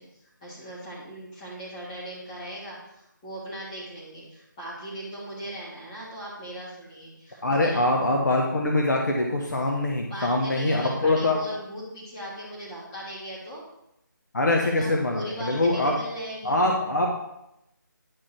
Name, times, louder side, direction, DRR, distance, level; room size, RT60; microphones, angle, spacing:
voice 1, 0.4-7.8 10.0-13.6 14.6-16.6, equal, 20° left, -7 dB, 2.6 m, -38 dB
voice 2, 7.4-11.4 14.3-15.9 16.4-17.1, left 2 dB, 60° left, 0 dB, 1.2 m, -23 dB
9.8 x 4.7 x 4.5 m, 0.85 s
figure-of-eight pair, 165°, 11 cm